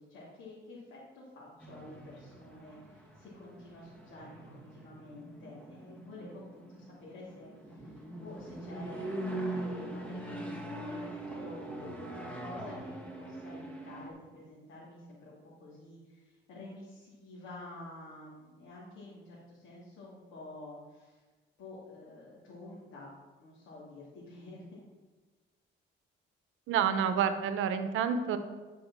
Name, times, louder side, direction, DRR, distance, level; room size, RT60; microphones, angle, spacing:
voice 1, 0.0-21.2 21.6-23.1 23.4-24.8, left 2 dB, 90° left, -6 dB, 2.4 m, -49 dB
sound 1, 1.6-14.1, right 1 dB, 5° left, 1.8 m, -42 dB
voice 2, 26.7-28.4, right 7 dB, 85° right, 10 dB, 0.8 m, -28 dB
10.5 x 5.0 x 6.0 m, 1.3 s
cardioid pair, 90°, 20 cm